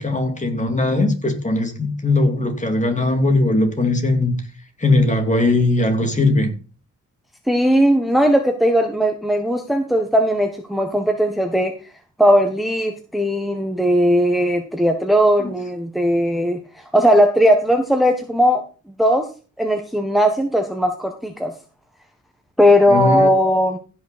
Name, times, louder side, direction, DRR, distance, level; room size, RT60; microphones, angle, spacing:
voice 1, 0.0-4.4 4.8-6.5 15.4-15.5 22.9-23.3, left 2 dB, 25° left, 5 dB, 2.8 m, -19 dB
voice 2, 7.5-11.7 12.2-18.6 19.0-19.3 19.6-21.5 22.6-23.8, equal, ahead, 4 dB, 1.4 m, -18 dB
16.0 x 6.3 x 4.3 m, 0.36 s
cardioid pair, 105°, 31 cm